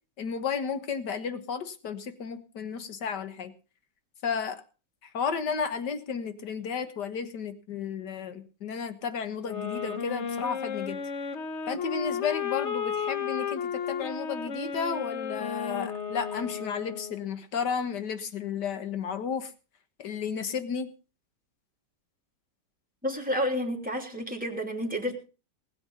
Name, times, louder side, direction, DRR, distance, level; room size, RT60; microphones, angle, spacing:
voice 1, 0.2-3.5 4.2-4.6 5.1-11.0 11.7-19.5 20.0-20.9, left 6 dB, 65° left, 10 dB, 2.0 m, -33 dB
sound 1, 9.4-17.3, left 7 dB, 50° left, 1.0 m, -33 dB
voice 2, 23.0-25.2, equal, 5° right, 0 dB, 3.1 m, -30 dB
20.0 x 8.0 x 5.5 m, 0.36 s
omnidirectional pair, 2.0 m